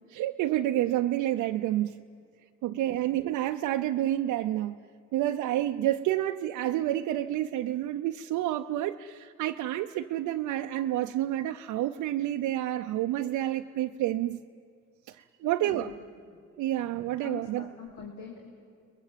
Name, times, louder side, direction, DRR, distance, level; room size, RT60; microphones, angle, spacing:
voice 1, 0.1-2.0 2.6-4.8 5.1-14.4 15.1-16.0 16.6-17.7, right 13 dB, 85° right, 0.6 m, -29 dB
voice 2, 2.7-3.1 15.4-15.9 17.2-18.5, left 6 dB, 70° left, 3.1 m, -44 dB
29.5 x 21.0 x 7.4 m
cardioid pair, 90°, 30 cm